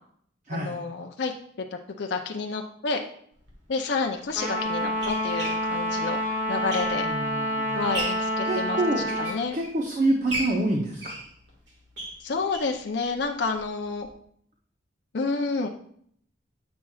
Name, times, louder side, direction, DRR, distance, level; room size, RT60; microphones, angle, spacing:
voice 1, 0.5-1.3 2.0-3.0 3.7-6.2 6.5-7.1 7.7-8.8 9.2-9.6 12.2-14.1 15.1-15.7, left 4 dB, 65° left, 3 dB, 0.5 m, -29 dB
sound 1, 3.4-3.5 4.3-7.3 7.7-8.3 8.9-9.8 10.3-12.8 13.2-13.3 13.6-13.7 14.0-14.1, right 1 dB, 65° right, 1.8 m, -36 dB
Trumpet, 4.3-9.4, equal, 10° right, 1.3 m, -28 dB
voice 2, 6.9-7.8 8.4-11.1, right 2 dB, 40° right, 0 dB, 0.7 m, -27 dB
8.4 x 6.0 x 2.4 m, 0.65 s
head